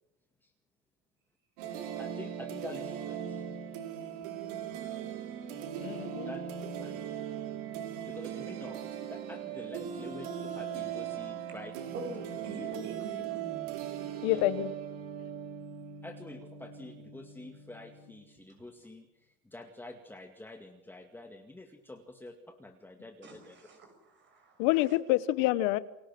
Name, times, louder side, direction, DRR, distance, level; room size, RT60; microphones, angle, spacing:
sound 1, 1.6-18.2, right 9 dB, 75° right, 4.6 m, -39 dB
voice 1, 2.0-3.5 6.2-7.0 8.0-11.7 14.3-14.5 16.0-23.6, left 2 dB, 5° left, 4 dB, 2.1 m, -47 dB
voice 2, 5.7-6.3 14.2-14.7 24.6-25.8, left 17 dB, 70° left, 16 dB, 1.2 m, -27 dB
voice 3, 11.9-13.8 23.2-24.6, right 2 dB, 40° right, 5 dB, 6.9 m, -44 dB
29.5 x 22.5 x 6.2 m, 0.91 s
supercardioid pair, 125°, 29 cm